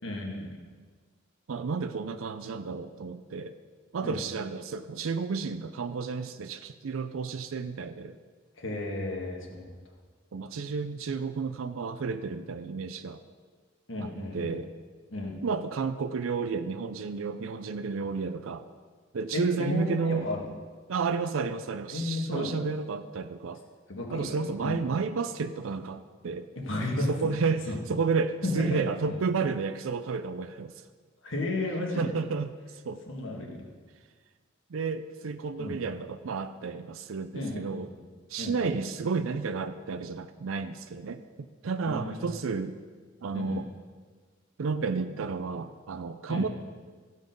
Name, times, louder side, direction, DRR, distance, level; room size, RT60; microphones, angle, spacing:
voice 1, 0.0-0.6 4.0-4.2 8.6-9.7 13.9-14.6 15.1-15.4 19.3-20.4 21.9-22.7 23.9-24.8 26.6-27.1 27.7-27.8 28.4-29.2 31.2-32.1 33.1-33.6 35.6-35.8 37.3-38.1 38.4-38.5 41.8-42.5 43.3-43.7 46.3-46.5, left 2 dB, 65° left, 0 dB, 1.8 m, -33 dB
voice 2, 1.5-3.5 3.9-8.2 10.3-13.2 14.0-14.1 14.3-14.7 15.4-18.6 19.1-20.3 20.9-23.6 24.1-26.5 27.1-30.7 32.0-32.5 32.8-33.0 34.7-37.9 38.3-41.2 41.6-42.8 43.2-43.7 44.6-46.5, right 4 dB, 75° right, 10 dB, 0.5 m, -31 dB
14.5 x 5.4 x 5.2 m, 1.5 s
head